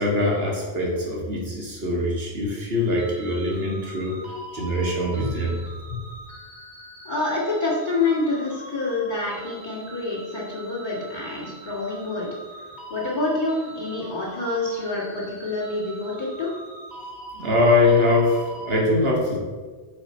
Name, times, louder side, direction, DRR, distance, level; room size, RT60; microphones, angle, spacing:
voice 1, 0.0-4.2 4.5-5.6 5.9-6.0 17.4-19.4, left 2 dB, 60° right, -2 dB, 1.8 m, -22 dB
sound 1, 3.0-18.8, right 2 dB, 20° right, 1.4 m, -42 dB
voice 2, 7.0-12.3 12.6-16.5, left 2 dB, 45° left, -7 dB, 1.9 m, -27 dB
6.9 x 4.9 x 4.2 m, 1.4 s
omnidirectional pair, 1.1 m